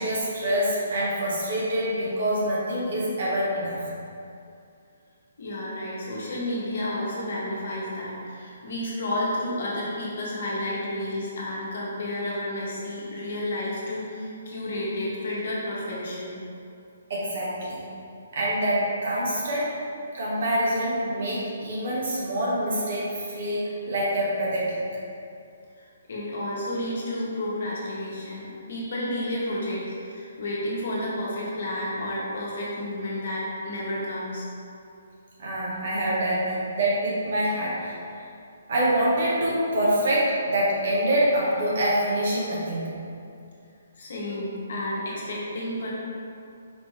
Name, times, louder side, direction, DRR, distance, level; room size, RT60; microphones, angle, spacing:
voice 1, 0.0-3.8 17.1-17.8 18.3-19.7 20.1-24.8 35.4-38.0 38.7-42.9, right 1 dB, 55° right, -6 dB, 1.4 m, -25 dB
voice 2, 5.4-16.4 25.8-34.5 44.0-45.9, left 1 dB, 60° left, -6 dB, 1.3 m, -31 dB
4.9 x 3.3 x 3.3 m, 2.5 s
figure-of-eight pair, 135°, 0 cm